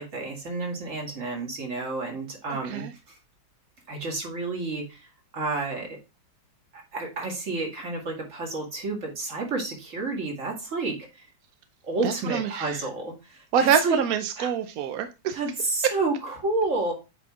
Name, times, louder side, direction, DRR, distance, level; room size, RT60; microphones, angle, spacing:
voice 1, 0.0-3.2 3.9-5.1 5.3-6.0 6.7-11.0 11.8-14.0 14.4-14.5 15.3-16.9, right 3 dB, 40° right, 2.2 m, -30 dB
voice 2, 2.5-2.9 12.0-12.8 13.5-15.4, right 7 dB, 70° right, 0.8 m, -26 dB
8.3 x 4.0 x 3.6 m
omnidirectional pair, 2.2 m